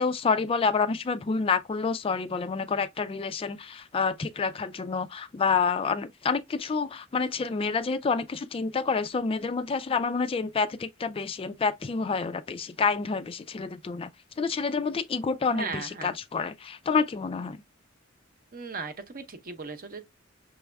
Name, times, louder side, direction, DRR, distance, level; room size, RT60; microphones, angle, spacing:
voice 1, 0.0-14.1 14.4-17.6, left 5 dB, 25° left, 0.3 m, -28 dB
voice 2, 15.5-16.1 18.5-20.1, right 4 dB, 45° right, 0.8 m, -37 dB
6.1 x 3.4 x 2.2 m
head